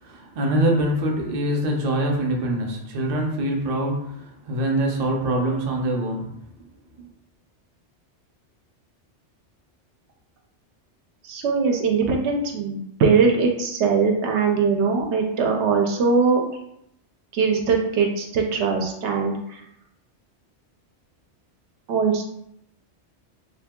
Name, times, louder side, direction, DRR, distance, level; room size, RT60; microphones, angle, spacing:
voice 1, 0.0-6.4 7.0-7.1, right 1 dB, 50° right, 0 dB, 0.5 m, -24 dB
voice 2, 11.2-16.4 17.3-19.6 21.9-22.2, right 5 dB, 75° right, 2 dB, 0.8 m, -21 dB
2.8 x 2.2 x 3.5 m, 0.76 s
omnidirectional pair, 1.2 m